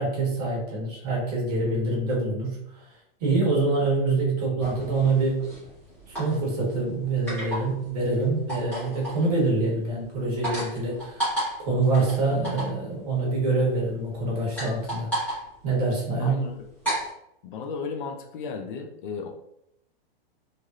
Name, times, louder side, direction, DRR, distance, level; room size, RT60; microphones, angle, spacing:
voice 1, 0.0-2.6 3.2-5.4 6.1-11.3 11.6-15.1 15.6-16.4, right 3 dB, 40° right, -4 dB, 1.2 m, -25 dB
sound 1, 4.6-17.1, right 1 dB, 5° left, 1.1 m, -34 dB
voice 2, 16.2-16.5 17.4-19.3, left 5 dB, 55° left, 3 dB, 0.5 m, -34 dB
3.2 x 2.6 x 2.4 m, 0.78 s
supercardioid pair, 170°, 31 cm